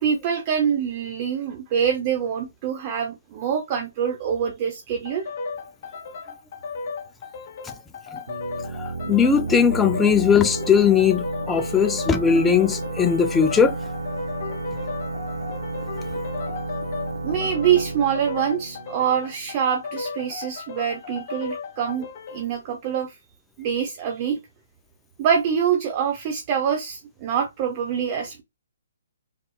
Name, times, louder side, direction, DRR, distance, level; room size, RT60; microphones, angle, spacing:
voice 1, 0.0-5.3 17.2-22.1 22.3-23.2 23.6-24.4 25.2-28.4, right 8 dB, 35° right, 0.6 m, -25 dB
sound 1, 5.0-22.5, left 4 dB, 45° left, 0.7 m, -35 dB
sound 2, 8.3-19.8, right 2 dB, 80° right, 0.7 m, -32 dB
voice 2, 9.1-13.8, left 7 dB, 10° left, 0.3 m, -19 dB
3.3 x 2.8 x 2.3 m
hypercardioid pair, 145°, 0 cm